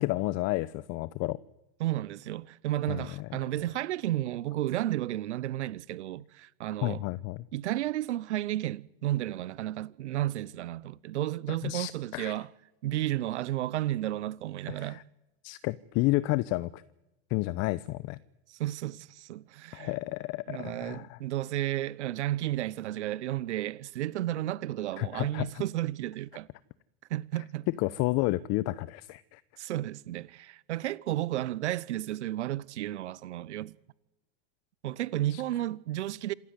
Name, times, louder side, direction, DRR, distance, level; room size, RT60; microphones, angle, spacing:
voice 1, 0.0-1.4 2.9-3.2 6.8-7.4 11.6-12.4 14.7-15.0 15.4-16.8 17.3-18.2 19.7-21.2 25.0-25.6 27.8-29.4 35.3-35.4, left 19 dB, 45° left, 0.9 m, -31 dB
voice 2, 1.8-7.0 7.5-12.5 12.8-15.0 18.5-19.9 20.5-26.5 27.1-27.7 29.6-33.7 34.8-36.3, right 14 dB, 85° right, 0.8 m, -32 dB
27.0 x 14.5 x 9.6 m
hypercardioid pair, 105°, 34 cm